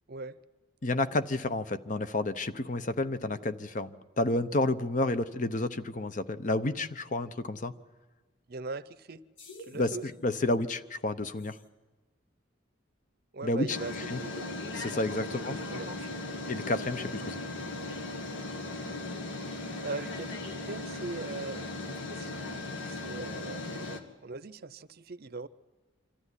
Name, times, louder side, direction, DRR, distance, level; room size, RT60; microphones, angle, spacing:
voice 1, 0.8-7.7 9.7-11.6 13.4-13.8 14.1-14.2 14.7-15.6 16.5-17.4, left 2 dB, 40° left, 11 dB, 0.8 m, -30 dB
voice 2, 8.5-9.2 9.6-10.0 13.3-14.5 15.3-16.3 19.8-20.3 20.7-22.5 22.8-25.5, right 3 dB, 50° right, 15 dB, 0.6 m, -40 dB
sound 1, 9.4-9.8 11.5-11.6 13.7-24.0, left 2 dB, 70° left, 2.0 m, -38 dB
25.5 x 13.0 x 9.8 m, 1.3 s
head